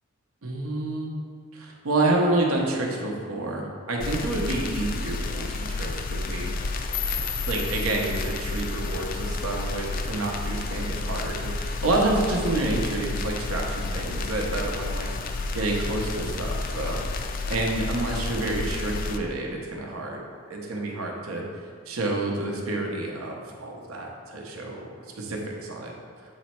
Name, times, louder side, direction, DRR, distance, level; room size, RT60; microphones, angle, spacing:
voice 1, 0.4-1.1 1.5-6.5 7.5-17.0 17.5-20.2 20.5-21.4 21.9-25.9, right 2 dB, 90° right, 0 dB, 0.9 m, -29 dB
sound 1, 4.0-19.2, left 3 dB, 40° left, 0.3 m, -31 dB
sound 2, 6.9-9.9, left 8 dB, 85° left, 0.6 m, -36 dB
7.4 x 3.1 x 4.4 m, 2.1 s
head